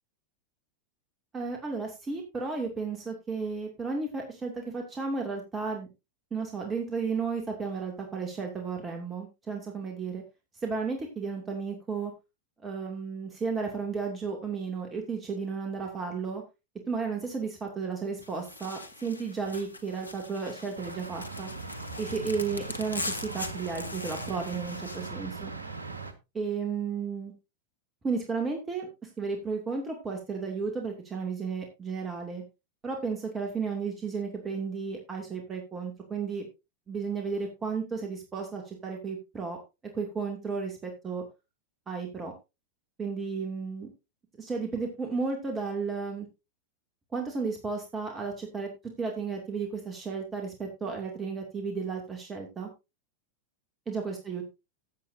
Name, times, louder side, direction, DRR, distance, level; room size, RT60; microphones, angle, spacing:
voice 1, 1.3-5.9 6.3-10.2 10.6-12.1 12.6-16.4 16.9-21.5 22.0-25.5 26.3-27.3 28.0-32.4 32.8-36.5 36.9-39.6 39.9-41.2 41.9-42.3 43.0-43.9 44.4-46.3 47.1-48.7 49.0-52.7 53.9-54.4, right 5 dB, 20° right, 2 dB, 2.4 m, -33 dB
sound 1, 18.2-25.1, left 2 dB, 80° left, 1.3 m, -41 dB
sound 2, 20.8-26.1, right 3 dB, 75° right, 1.5 m, -40 dB
14.5 x 8.6 x 2.7 m, 0.26 s
figure-of-eight pair, 90°, 0 cm